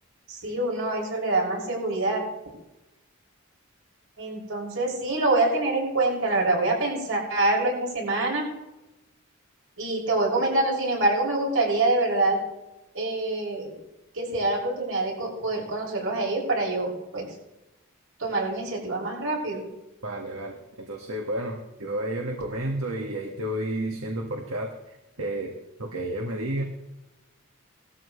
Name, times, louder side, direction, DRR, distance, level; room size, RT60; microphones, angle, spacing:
voice 1, 0.3-2.2 4.2-8.4 9.8-12.4 12.9-13.7 14.1-17.2 18.2-19.6, right 2 dB, 70° right, -2 dB, 6.3 m, -25 dB
voice 2, 20.0-25.5 25.8-26.6, right 1 dB, 85° right, 1 dB, 1.7 m, -31 dB
20.0 x 13.5 x 3.2 m, 0.96 s
head